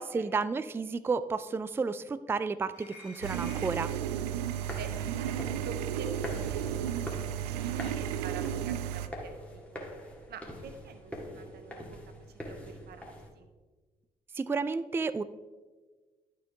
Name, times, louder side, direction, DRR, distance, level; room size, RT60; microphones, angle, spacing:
voice 1, 0.0-3.9 14.4-15.2, right 4 dB, 10° right, 15 dB, 0.3 m, -32 dB
sound 1, 2.7-4.0 5.3-5.5 6.4-6.6, left 2 dB, 50° left, 2.0 m, -51 dB
sound 2, 3.2-9.1, right 10 dB, 75° right, 0.4 m, -33 dB
sound 3, 4.5-13.3, equal, 5° left, 1.9 m, -44 dB
voice 2, 4.8-9.9 10.3-12.0 12.3-13.5, right 5 dB, 55° right, 9 dB, 0.9 m, -47 dB
11.5 x 4.7 x 3.5 m, 1.3 s
figure-of-eight pair, 45°, 21 cm